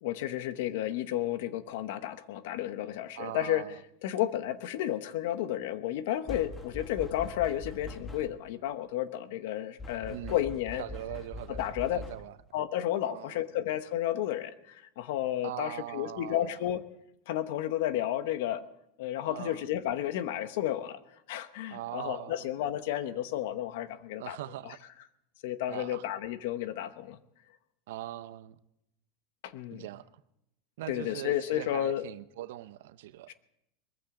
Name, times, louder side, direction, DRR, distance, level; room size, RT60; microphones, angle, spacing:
voice 1, 0.0-3.7 4.0-10.8 11.6-12.0 12.5-16.8 17.3-18.6 19.0-21.0 21.3-24.4 24.6-24.7 25.4-27.2 29.4-29.8 30.9-32.0 33.3-33.4, left 12 dB, 65° left, 1.0 m, -32 dB
voice 2, 3.2-3.8 10.1-10.4 10.8-11.6 11.9-12.4 13.0-13.4 15.4-16.6 19.2-19.7 21.7-22.5 24.2-24.8 25.7-26.1 27.9-28.6 29.7-30.1 30.8-33.3, right 14 dB, 75° right, 0.7 m, -41 dB
sound 1, 6.3-8.5 9.8-12.5, left 2 dB, 15° left, 1.2 m, -43 dB
21.5 x 15.0 x 3.8 m
supercardioid pair, 170°, 0 cm